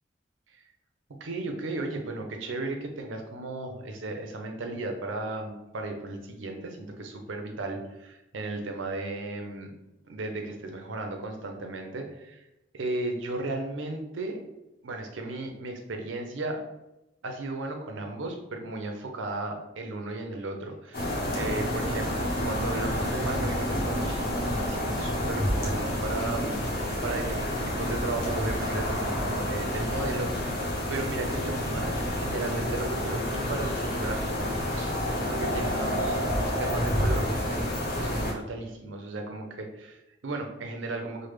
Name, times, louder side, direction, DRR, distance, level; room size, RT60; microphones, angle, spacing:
voice 1, 1.2-9.7 10.1-12.4 12.7-14.4 14.8-16.6 17.2-30.6 30.9-35.0 35.3-41.3, right 2 dB, 85° right, 4 dB, 0.6 m, -35 dB
sound 1, 20.9-38.3, equal, 50° left, 0.8 m, -29 dB
3.2 x 2.1 x 3.2 m, 0.92 s
head